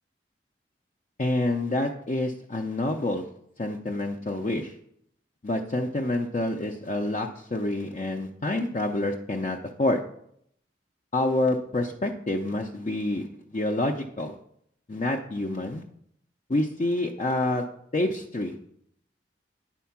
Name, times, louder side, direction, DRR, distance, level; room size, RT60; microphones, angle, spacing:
voice 1, 1.2-3.3 3.6-4.7 5.4-10.0 11.1-14.3 14.9-15.8 16.5-17.6 17.9-18.5, left 2 dB, 40° left, 1 dB, 0.5 m, -27 dB
9.3 x 4.4 x 5.8 m, 0.70 s
head